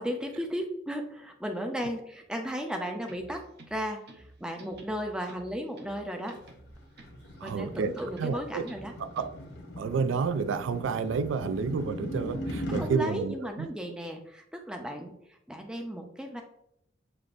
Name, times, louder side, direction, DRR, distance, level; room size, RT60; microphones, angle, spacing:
voice 1, 0.0-6.4 7.4-8.9 12.7-15.2 15.5-16.4, equal, 5° right, 0.5 m, -35 dB
sound 1, 3.0-9.6, right 2 dB, 55° right, 0.7 m, -53 dB
sound 2, 6.4-12.9, left 1 dB, 60° left, 0.8 m, -39 dB
voice 2, 7.4-8.7 9.0-9.3 9.8-13.7, right 5 dB, 75° right, 0.3 m, -30 dB
6.7 x 2.5 x 2.5 m
head